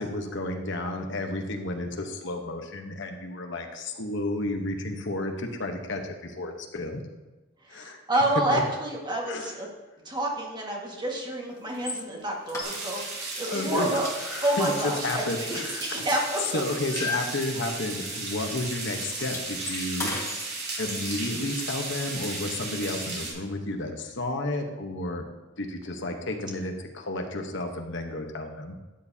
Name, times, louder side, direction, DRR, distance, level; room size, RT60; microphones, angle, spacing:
voice 1, 0.0-7.0 7.7-8.0 8.5-8.6 9.2-9.6 13.5-16.0 16.5-20.3 20.8-25.2 25.6-28.8, left 2 dB, 60° left, 4 dB, 1.0 m, -32 dB
voice 2, 7.7-9.7 10.0-14.1 14.4-16.6, right 1 dB, 20° right, -1 dB, 1.7 m, -29 dB
sound 1, 11.7-12.0 12.5-13.2 13.5-13.8 14.0-16.1 16.4-17.9 18.2-18.4 18.6-20.4, left 3 dB, 15° left, 1.6 m, -36 dB
sound 2, 12.6-23.3, right 3 dB, 60° right, 3.6 m, -35 dB
12.5 x 9.5 x 2.8 m, 1.1 s
head